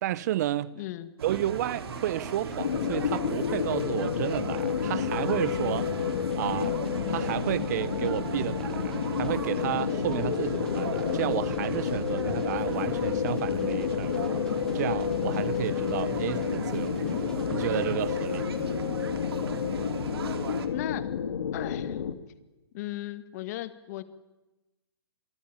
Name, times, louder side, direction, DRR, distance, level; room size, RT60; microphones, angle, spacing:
voice 1, 0.0-0.8 1.2-5.9 6.4-6.8 7.1-14.3 14.7-17.2 17.5-18.5, right 13 dB, 40° right, 0.8 m, -32 dB
voice 2, 0.8-1.1 20.7-21.1 21.5-22.0 22.7-24.0, left 15 dB, 40° left, 2.0 m, -36 dB
sound 1, 1.2-20.7, right 6 dB, 70° right, 3.1 m, -38 dB
sound 2, 1.5-17.9, left 2 dB, 5° left, 3.0 m, -48 dB
sound 3, 2.6-22.2, left 7 dB, 75° left, 2.3 m, -30 dB
27.0 x 20.0 x 7.0 m
hypercardioid pair, 150°, 13 cm